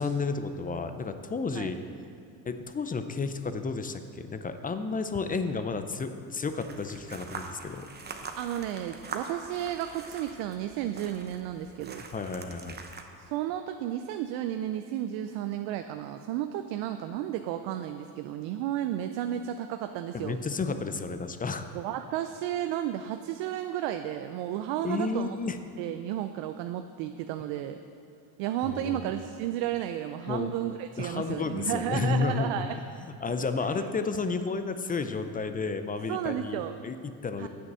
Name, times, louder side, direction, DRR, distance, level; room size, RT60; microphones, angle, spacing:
voice 1, 0.0-1.8 2.5-7.9 12.1-12.8 20.1-21.7 24.8-25.6 28.6-29.1 30.3-30.5 31.0-32.6 33.1-37.5, left 4 dB, 20° left, 9 dB, 0.5 m, -32 dB
sound 1, 6.5-13.0, right 4 dB, 20° right, 0.9 m, -43 dB
voice 2, 8.4-12.0 13.2-20.4 21.7-25.4 25.8-27.8 28.4-32.8 36.1-36.8 37.4-37.5, right 11 dB, 80° right, 8 dB, 0.6 m, -33 dB
8.1 x 6.4 x 7.4 m, 2.4 s
supercardioid pair, 95°, 44 cm